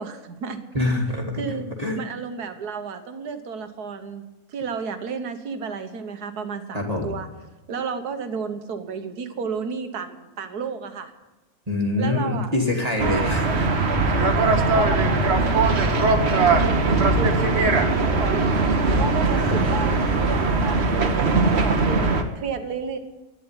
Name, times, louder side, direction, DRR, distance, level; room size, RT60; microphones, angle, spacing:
voice 1, 0.0-0.6 1.4-1.7 1.9-4.2 4.5-7.3 7.7-11.1 12.0-12.5 13.0-13.6 14.3-15.5 15.9-18.7 19.0-23.0, right 5 dB, 80° right, 8 dB, 1.7 m, -32 dB
voice 2, 0.7-2.0 6.7-7.2 11.7-13.9 14.2-14.3 19.3-19.8, left 2 dB, 25° right, 0 dB, 2.1 m, -26 dB
sound 1, 13.0-22.2, right 3 dB, 45° right, 1.3 m, -20 dB
11.5 x 10.0 x 9.8 m, 1.1 s
omnidirectional pair, 1.6 m